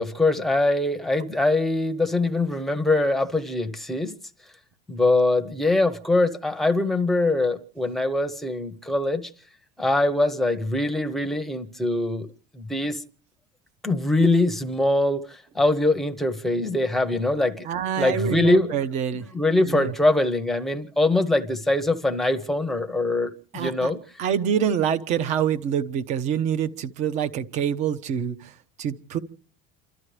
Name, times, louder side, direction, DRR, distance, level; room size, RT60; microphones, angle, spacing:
voice 1, 0.0-4.1 4.9-9.3 9.8-12.3 12.5-13.0 13.8-17.7 18.0-18.7 19.3-24.0, left 2 dB, ahead, 0.8 m, -23 dB
voice 2, 17.6-19.2 19.7-19.9 23.5-23.9 24.2-29.2, right 8 dB, 40° right, 0.9 m, -26 dB
29.0 x 13.0 x 3.3 m
cardioid pair, 165°, 18 cm